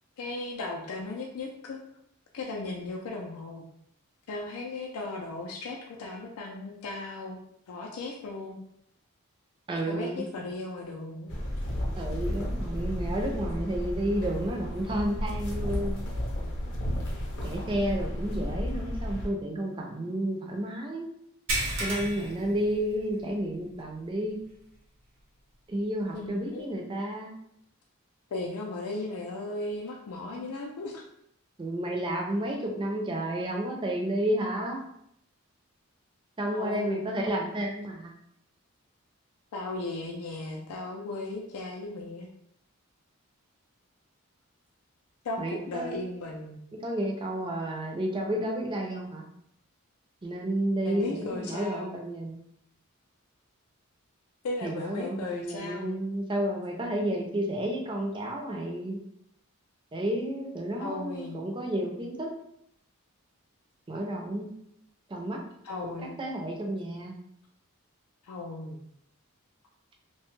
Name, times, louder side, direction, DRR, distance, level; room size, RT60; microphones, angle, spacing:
voice 1, 0.2-1.8 2.3-3.6 4.3-7.4 7.7-8.6 9.9-11.3 26.1-26.9 28.3-31.0 36.5-37.1 39.5-42.3 45.2-46.6 50.8-52.0 54.4-56.0 60.8-61.4 65.6-66.1 68.2-68.8, left 2 dB, 85° left, 0 dB, 0.4 m, -36 dB
voice 2, 9.7-10.2 12.0-15.9 17.4-21.1 21.8-24.4 25.7-27.3 31.6-34.8 36.4-38.1 45.4-46.0 46.8-49.2 50.2-52.4 54.6-59.0 59.9-62.3 63.9-64.5 65.1-65.4 65.8-67.1, right 1 dB, 20° right, 1 dB, 0.4 m, -31 dB
sound 1, 11.3-19.3, equal, 55° left, 0.7 m, -33 dB
sound 2, 21.5-23.4 23.7-23.9 24.4-24.5 26.2-26.3, right 1 dB, 60° right, 0.7 m, -33 dB
2.8 x 2.2 x 3.0 m, 0.74 s
head